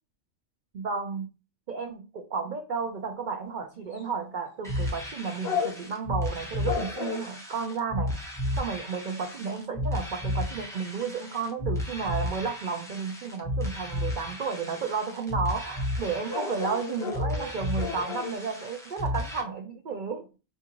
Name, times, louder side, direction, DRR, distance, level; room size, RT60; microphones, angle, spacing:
voice 1, 0.7-1.3 1.7-8.1 8.6-20.2, right 5 dB, 55° right, 3 dB, 0.5 m, -32 dB
sound 1, 3.9-4.0 5.4-6.0 6.6-7.3 8.2-8.3 8.7-8.8 9.1-9.6 10.2-10.5 14.1-14.2 14.5-14.6 16.0-16.1 16.3-18.3, left 6 dB, 60° left, 0.8 m, -33 dB
sound 2, 4.6-19.4, left 1 dB, 5° left, 0.6 m, -33 dB
5.3 x 2.4 x 2.9 m, 0.31 s
omnidirectional pair, 1.4 m